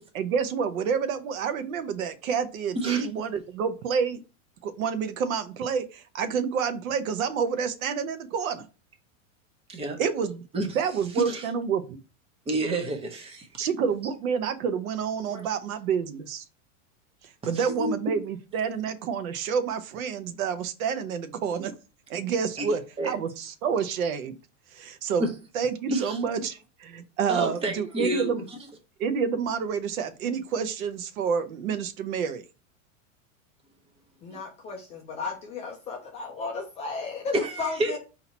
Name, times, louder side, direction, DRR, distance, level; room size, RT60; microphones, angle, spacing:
voice 1, 0.1-4.2 4.6-8.6 10.0-12.0 13.6-16.4 17.2-21.7 22.1-24.4 24.7-25.3 25.5-28.4 29.0-32.4 34.3-34.4, right 6 dB, 80° right, 0.9 m, -28 dB
voice 2, 2.7-3.0 9.7-10.0 10.5-10.7 11.2-11.4 12.5-13.5 15.3-15.4 17.5-18.0 22.6-23.1 25.2-25.3 25.9-26.2 27.3-28.3 37.3-38.0, right 1 dB, 15° right, 0.7 m, -29 dB
voice 3, 34.2-38.0, left 4 dB, 20° left, 0.3 m, -34 dB
4.3 x 2.8 x 4.1 m
supercardioid pair, 140°, 41 cm